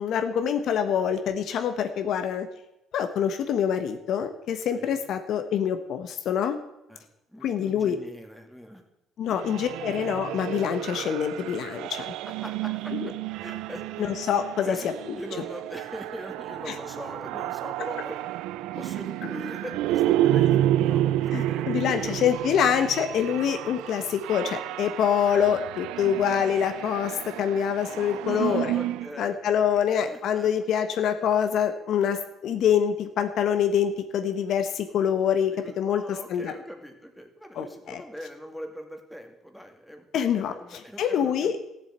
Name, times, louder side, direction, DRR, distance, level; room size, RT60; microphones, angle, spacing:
voice 1, 0.0-2.5 2.9-6.6 7.4-8.0 9.2-12.1 12.9-13.1 14.0-14.8 16.7-16.8 21.3-28.8 29.2-36.5 37.5-38.0 40.1-41.6, left 8 dB, 65° left, 8 dB, 1.2 m, -25 dB
voice 2, 7.3-8.8 9.3-9.4 12.3-12.9 13.4-13.8 14.6-14.9 15.2-18.2 18.7-22.3 28.2-30.5 35.5-40.1 40.5-41.6, equal, ahead, 3 dB, 2.2 m, -41 dB
sound 1, 9.3-29.1, right 13 dB, 85° right, 0.4 m, -30 dB
14.0 x 7.4 x 8.8 m, 0.87 s
cardioid pair, 110°, 0 cm